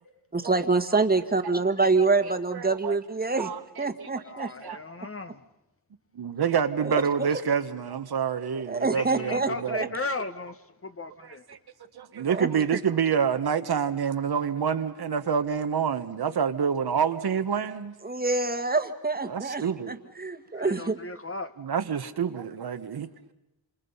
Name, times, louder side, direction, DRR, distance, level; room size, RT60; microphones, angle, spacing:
voice 1, 0.3-3.5 3.8-4.5 6.8-7.3 8.7-9.9 12.3-12.6 18.0-21.0, right 3 dB, 20° right, 1.6 m, -26 dB
voice 2, 2.5-2.9 3.4-3.6 4.0-4.1 4.4-4.8 6.2-9.9 11.2-11.6 11.9-18.0 19.3-20.0 21.6-23.1, right 7 dB, 60° right, 1.3 m, -27 dB
voice 3, 4.2-5.4 8.9-11.4 20.5-21.5, left 3 dB, 30° left, 1.3 m, -36 dB
28.0 x 27.5 x 5.6 m
wide cardioid pair, 95°, 44 cm